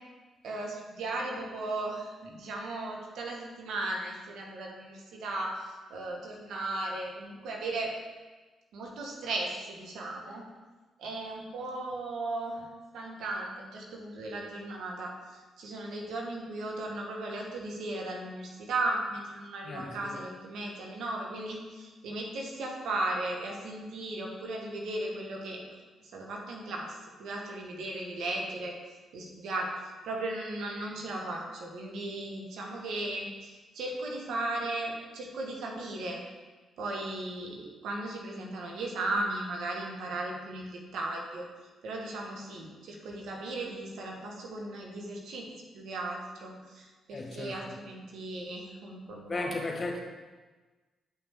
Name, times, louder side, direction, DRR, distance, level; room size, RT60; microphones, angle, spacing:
voice 1, 0.4-7.9 8.7-10.4 11.0-12.7 12.9-25.6 26.1-28.8 29.1-29.7 30.0-36.2 36.8-41.5 41.8-45.5 45.7-49.7, right 2 dB, 75° right, 0 dB, 1.5 m, -36 dB
voice 2, 19.6-20.2 47.1-47.8 49.3-50.0, left 2 dB, 45° left, 2 dB, 1.6 m, -36 dB
10.0 x 5.7 x 3.7 m, 1.3 s
hypercardioid pair, 50°, 0 cm